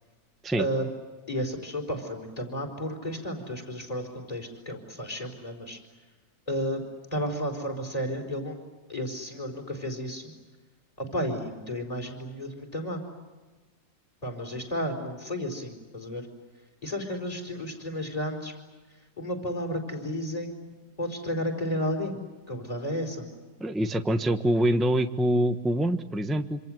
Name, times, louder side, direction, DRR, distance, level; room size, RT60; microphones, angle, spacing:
voice 1, 1.3-5.8 6.5-6.8 7.1-8.6 8.9-10.3 11.0-13.0 14.2-16.3 16.8-18.5 19.2-20.7 21.0-22.2 22.5-23.3, equal, 20° left, 4 dB, 4.6 m, -32 dB
voice 2, 23.6-26.6, right 1 dB, ahead, 7 dB, 0.8 m, -25 dB
27.0 x 26.5 x 7.8 m, 1.3 s
omnidirectional pair, 2.1 m